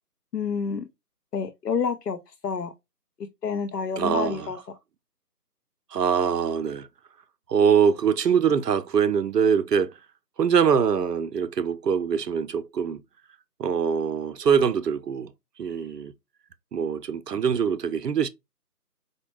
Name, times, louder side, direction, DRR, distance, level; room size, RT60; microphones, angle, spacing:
voice 1, 0.3-0.8 1.3-2.7 3.4-4.6, left 6 dB, 80° left, 0.7 m, -28 dB
voice 2, 4.0-4.5 5.9-6.9 7.5-9.9 10.4-13.0 13.6-15.3 15.6-16.1 16.7-18.3, right 7 dB, 80° right, 0.6 m, -23 dB
4.3 x 2.1 x 3.1 m
figure-of-eight pair, 165°, 48 cm